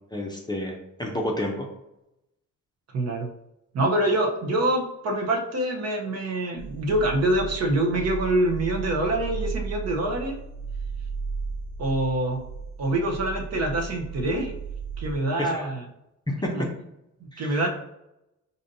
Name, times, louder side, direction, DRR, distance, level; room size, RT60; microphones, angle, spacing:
voice 1, 0.1-1.7 15.4-15.7 16.3-16.5 17.3-17.6, left 1 dB, 15° left, 0 dB, 0.6 m, -30 dB
voice 2, 2.9-3.3 3.7-10.4 11.8-12.4 12.8-14.5 15.0-15.8 16.5-16.6 17.2-17.7, right 1 dB, 50° right, 2 dB, 0.8 m, -25 dB
sound 1, 6.6-15.1, right 5 dB, 65° left, 0.6 m, -35 dB
5.0 x 2.7 x 2.6 m, 0.86 s
cardioid pair, 125°, 33 cm